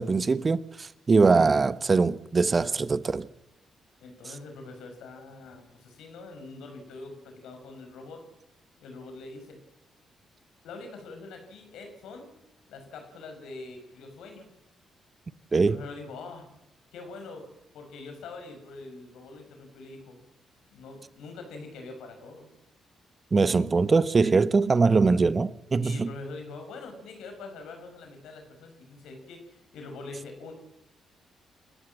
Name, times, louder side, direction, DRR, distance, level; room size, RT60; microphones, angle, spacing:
voice 1, 0.0-3.3 15.5-15.8 23.3-26.1, right 4 dB, 35° right, 1.0 m, -22 dB
voice 2, 4.0-8.3 8.8-9.6 10.6-12.3 12.7-14.5 15.5-16.5 16.9-17.5 17.7-20.2 20.7-22.5 25.8-30.5, left 3 dB, 70° left, 5.8 m, -44 dB
28.5 x 14.0 x 7.6 m
hypercardioid pair, 40°, 0 cm